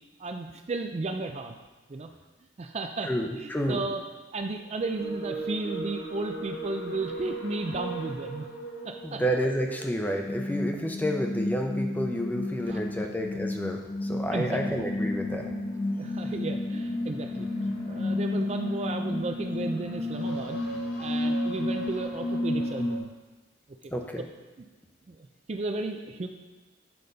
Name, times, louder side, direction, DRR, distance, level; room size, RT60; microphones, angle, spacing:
voice 1, 0.2-1.6 1.9-2.1 2.6-4.0 4.3-8.5 8.8-9.2 12.7-12.8 14.3-14.6 16.0-17.5 17.9-20.6 21.0-23.1 25.1-26.3, right 3 dB, 35° right, 5 dB, 0.4 m, -34 dB
voice 2, 3.0-3.8 9.0-15.5 23.9-24.2, equal, 10° left, 2 dB, 0.6 m, -30 dB
sound 1, 4.9-23.0, left 1 dB, 55° left, 1.0 m, -32 dB
8.6 x 5.2 x 4.0 m, 1.2 s
head